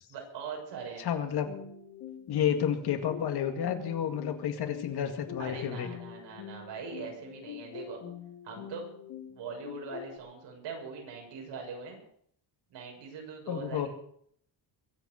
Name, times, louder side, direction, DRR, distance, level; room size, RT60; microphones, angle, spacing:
voice 1, 0.1-1.0 5.4-8.0 8.4-8.8 9.3-12.0 12.7-13.9, right 5 dB, 80° right, 1 dB, 6.8 m, -41 dB
voice 2, 1.0-1.5 2.3-5.9 13.5-13.9, left 9 dB, 60° left, 6 dB, 2.2 m, -30 dB
sound 1, 1.5-10.2, left 9 dB, 75° left, 2.7 m, -45 dB
23.0 x 8.4 x 6.4 m, 0.66 s
cardioid pair, 155°, 43 cm